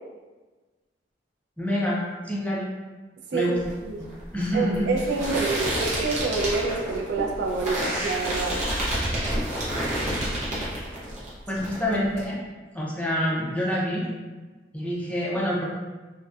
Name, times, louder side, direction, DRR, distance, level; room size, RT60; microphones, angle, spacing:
voice 1, 1.6-2.7 3.3-3.6 4.3-4.9 5.3-5.4 11.5-12.4 12.7-14.1 14.7-15.7, equal, 10° left, -6 dB, 0.4 m, -26 dB
sound 1, 3.6-11.3 11.6-12.2, right 1 dB, 40° right, 0.7 m, -29 dB
voice 2, 4.5-8.6, right 4 dB, 65° right, 1 dB, 0.3 m, -27 dB
2.6 x 2.1 x 2.3 m, 1.3 s
head